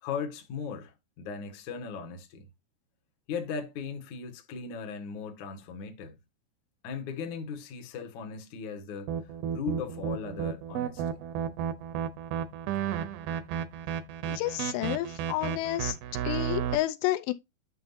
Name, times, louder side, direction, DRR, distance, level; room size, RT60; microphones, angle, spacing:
voice 1, 0.0-2.5 3.3-6.2 6.8-11.2, left 6 dB, 60° left, 2.2 m, -38 dB
sound 1, 9.1-16.8, right 9 dB, 75° right, 2.3 m, -32 dB
voice 2, 14.3-16.0 16.3-17.3, left 15 dB, 90° left, 2.9 m, -30 dB
9.6 x 5.7 x 2.7 m
omnidirectional pair, 4.9 m